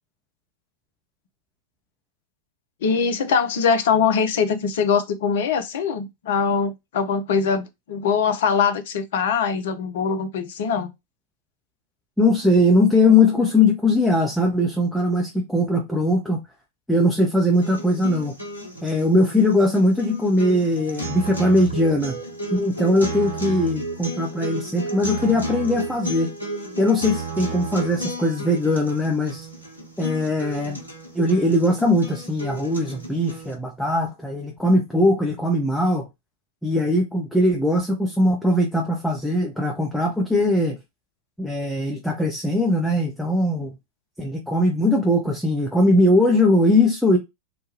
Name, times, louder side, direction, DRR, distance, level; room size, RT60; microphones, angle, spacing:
voice 1, 2.8-10.9, left 6 dB, 55° left, 0.5 m, -22 dB
voice 2, 12.2-16.4 16.9-18.3 18.8-22.2 22.5-26.3 26.8-29.5 30.0-30.8 31.1-36.1 36.6-40.8 41.4-43.7 44.2-47.2, left 1 dB, 5° left, 0.7 m, -20 dB
sound 1, 17.5-33.5, right 1 dB, 85° right, 0.8 m, -33 dB
3.0 x 2.2 x 3.0 m
figure-of-eight pair, 90°, 0 cm